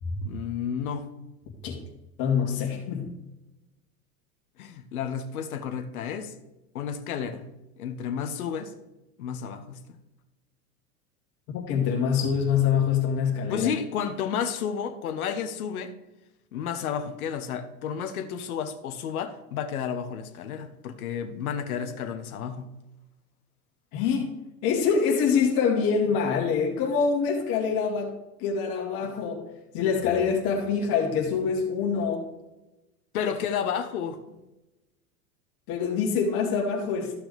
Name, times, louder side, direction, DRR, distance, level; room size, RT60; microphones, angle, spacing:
voice 1, 0.2-1.1 4.6-6.3 6.7-7.5 7.8-8.7 9.2-9.8 13.5-15.9 16.5-22.7 33.1-34.4, left 7 dB, 75° left, 1.2 m, -31 dB
voice 2, 2.2-3.1 11.5-13.7 23.9-24.3 24.6-28.1 28.4-29.5 29.7-32.2 35.7-37.1, left 6 dB, 50° left, 2.6 m, -25 dB
14.5 x 6.0 x 3.4 m
hypercardioid pair, 95°, 44 cm